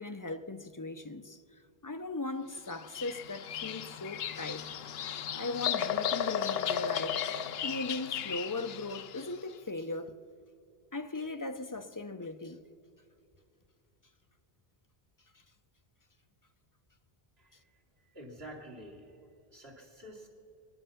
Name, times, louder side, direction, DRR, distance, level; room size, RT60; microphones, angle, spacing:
voice 1, 0.0-4.7 5.4-7.2 7.6-10.2 10.9-12.6, left 2 dB, 25° left, 0.4 m, -38 dB
Bird vocalization bird call bird song, 2.7-9.3, left 9 dB, 75° left, 0.9 m, -35 dB
voice 2, 18.1-19.2 19.5-20.3, equal, 75° right, 2.9 m, -48 dB
25.0 x 10.0 x 5.7 m
omnidirectional pair, 1.0 m